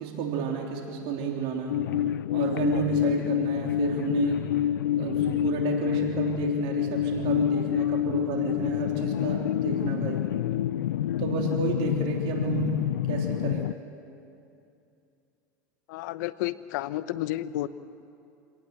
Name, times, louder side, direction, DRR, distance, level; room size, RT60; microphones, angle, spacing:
voice 1, 0.0-1.8 2.3-4.5 5.0-10.2 11.2-13.7, right 6 dB, 60° right, 1 dB, 3.4 m, -31 dB
sound 1, 1.7-13.7, left 11 dB, 85° left, 0.5 m, -27 dB
voice 2, 15.9-17.7, left 15 dB, 70° left, 15 dB, 0.9 m, -31 dB
27.0 x 18.0 x 7.8 m, 2.6 s
hypercardioid pair, 90°, 10 cm